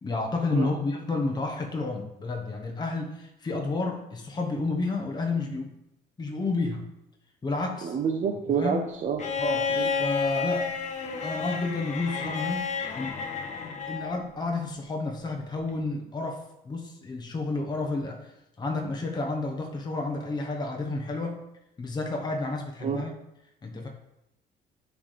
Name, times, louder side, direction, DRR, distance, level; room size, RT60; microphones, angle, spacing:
voice 1, 0.0-5.7 6.2-6.9 7.4-8.0 8.5-8.9 9.4-9.7 10.0-10.8 11.2-12.7 12.9-13.1 13.9-16.4 16.6-18.3 18.6-21.5 21.8-23.1 23.6-23.9, left 3 dB, 25° left, 1 dB, 1.1 m, -30 dB
voice 2, 7.8-9.2 9.8-9.9 22.8-23.0, right 7 dB, 45° right, 2 dB, 0.7 m, -28 dB
Bowed string instrument, 9.2-14.2 15.7-15.8, left 5 dB, 45° left, 1.0 m, -30 dB
9.6 x 3.3 x 4.2 m, 0.85 s
cardioid pair, 110°, 17 cm